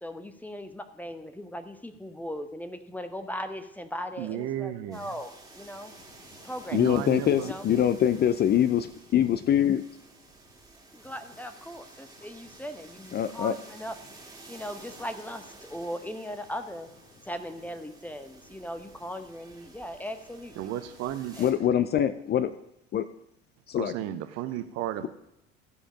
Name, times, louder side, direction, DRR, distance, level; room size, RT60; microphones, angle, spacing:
voice 1, 0.0-5.9 6.4-6.9 7.4-7.7 10.9-13.9 14.5-16.9 17.2-20.7 21.4-21.8, equal, 5° left, 8 dB, 0.9 m, -39 dB
voice 2, 4.2-5.1 6.7-7.5 20.6-21.4 23.8-25.1, right 12 dB, 55° right, 10 dB, 0.8 m, -33 dB
sound 1, 4.9-21.5, right 2 dB, 10° right, 2.4 m, -52 dB
voice 3, 6.7-9.8 13.1-13.5 21.4-22.5 22.9-23.1 23.7-23.9, left 10 dB, 30° left, 12 dB, 0.5 m, -24 dB
15.0 x 5.1 x 5.1 m, 0.81 s
figure-of-eight pair, 65°, 32 cm